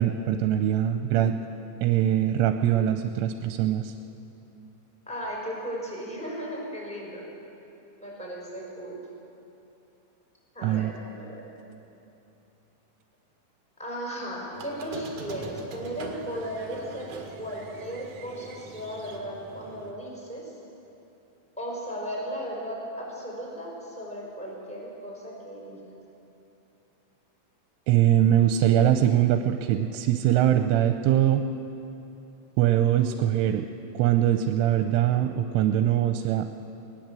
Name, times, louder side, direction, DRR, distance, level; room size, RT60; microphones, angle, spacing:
voice 1, 0.0-1.3 1.8-3.9 10.6-10.9 27.9-31.4 32.6-33.7 33.9-36.5, right 11 dB, 85° right, 7 dB, 3.1 m, -22 dB
voice 2, 5.1-7.3 8.0-9.0 10.5-11.4 13.8-20.5 21.6-25.8, equal, ahead, -3 dB, 4.4 m, -36 dB
Squeak, 14.5-19.9, right 4 dB, 55° right, 2.4 m, -42 dB
19.5 x 19.5 x 7.6 m, 2.8 s
omnidirectional pair, 5.6 m